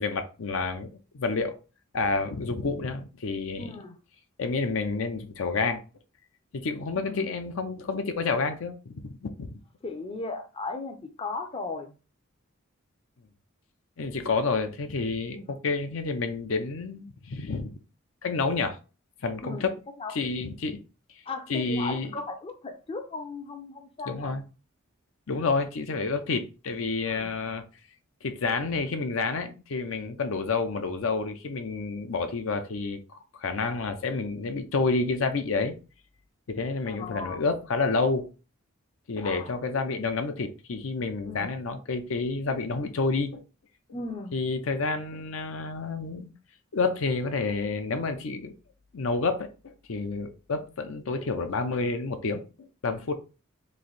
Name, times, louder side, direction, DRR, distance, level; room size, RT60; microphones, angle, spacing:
voice 1, 0.0-1.6 1.9-3.7 4.4-5.8 6.5-9.6 14.0-17.7 18.2-18.8 19.2-19.7 20.1-20.8 21.5-22.1 24.1-24.4 25.3-27.6 28.2-33.0 33.4-35.8 36.5-38.3 39.1-43.4 44.3-46.3 46.7-48.5 48.9-53.1, left 4 dB, 75° left, 0.6 m, -29 dB
voice 2, 3.6-4.0 6.9-7.3 9.8-11.9 15.3-15.6 19.4-19.7 20.0-20.3 21.3-24.3 27.1-27.4 36.9-37.4 39.2-39.6 41.2-41.5 43.9-44.4, left 3 dB, 25° left, 0.5 m, -37 dB
3.1 x 2.6 x 3.9 m
head